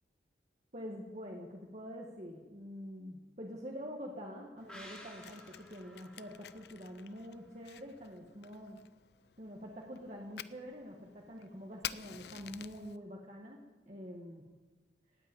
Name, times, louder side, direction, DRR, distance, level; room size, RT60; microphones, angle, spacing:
voice 1, 0.7-8.8 9.4-14.5, equal, 40° right, -1 dB, 1.5 m, -46 dB
Fire, 4.6-13.0, left 10 dB, 70° left, 0.5 m, -50 dB
sound 1, 4.7-8.1 8.4-8.5, equal, 5° left, 2.9 m, -55 dB
18.0 x 8.8 x 8.9 m, 1.3 s
head